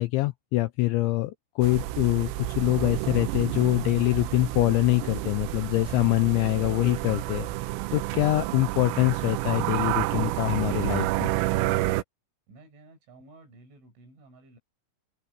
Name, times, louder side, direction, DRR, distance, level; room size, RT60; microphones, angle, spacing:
voice 1, 0.0-7.5 7.9-11.3, left 19 dB, 80° left, 2.7 m, -24 dB
sound 1, 1.6-12.0, right 16 dB, 85° right, 3.4 m, -30 dB
voice 2, 12.5-14.6, right 2 dB, 65° right, 8.8 m, -53 dB
omnidirectional pair, 6.0 m